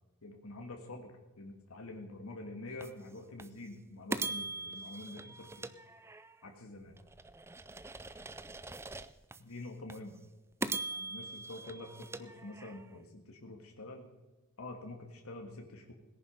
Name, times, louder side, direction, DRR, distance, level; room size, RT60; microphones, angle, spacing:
voice 1, 0.2-5.7 6.4-6.9 9.4-10.2 10.9-14.1 14.6-15.9, left 2 dB, 90° left, 3 dB, 1.8 m, -47 dB
sound 1, 2.8-2.9 3.4-3.5 4.1-6.5 7.0-9.4 9.9-10.0 10.6-13.0, right 3 dB, 10° right, 0.4 m, -41 dB
18.0 x 10.5 x 5.3 m, 1.2 s
head